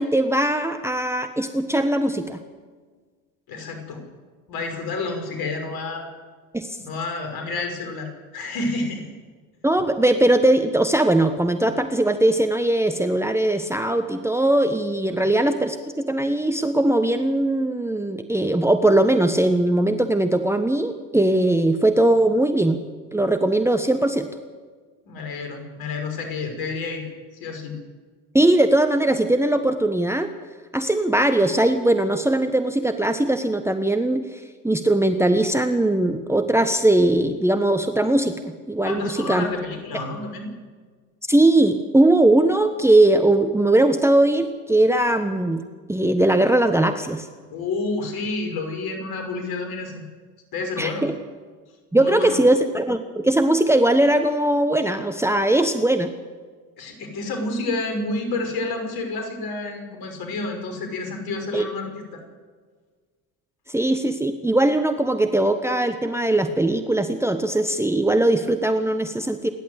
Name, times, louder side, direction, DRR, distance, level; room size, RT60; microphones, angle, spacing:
voice 1, 0.0-2.4 6.5-6.8 9.6-22.8 23.1-24.3 28.3-30.3 30.7-39.5 41.3-45.6 45.9-47.3 50.8-51.1 51.9-56.1 61.5-61.7 63.7-69.5, right 1 dB, 5° right, 7 dB, 1.4 m, -20 dB
voice 2, 3.5-4.0 4.5-6.1 6.9-9.0 15.2-15.3 25.0-27.0 27.4-27.7 38.8-40.5 47.5-50.0 50.5-51.1 51.9-52.4 56.8-62.2, left 3 dB, 50° left, 5 dB, 6.1 m, -29 dB
28.0 x 11.5 x 8.4 m, 1.5 s
hypercardioid pair, 70°, 47 cm